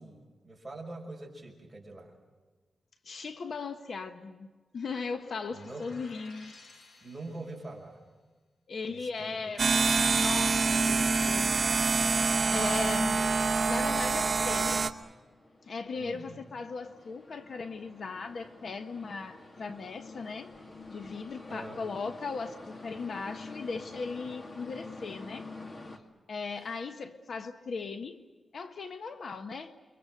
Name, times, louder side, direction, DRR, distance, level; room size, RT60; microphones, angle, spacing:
voice 1, 0.0-2.1 5.5-5.9 7.0-8.0 8.9-9.9 15.9-16.4 21.5-21.8, right 2 dB, 15° right, -2 dB, 6.1 m, -44 dB
voice 2, 3.0-4.5 4.7-6.5 8.7-9.7 10.1-11.9 12.5-13.2 13.7-14.8 15.7-20.5 20.9-25.5 26.3-28.2 28.5-29.8, left 4 dB, 55° left, 8 dB, 1.1 m, -38 dB
sound 1, 5.0-7.8, left 3 dB, 85° left, 5.9 m, -55 dB
sound 2, 9.6-14.9, right 4 dB, 40° right, 1.0 m, -26 dB
sound 3, 14.8-26.0, left 3 dB, 30° left, 2.1 m, -48 dB
29.0 x 23.5 x 6.4 m, 1.3 s
wide cardioid pair, 165°, 0 cm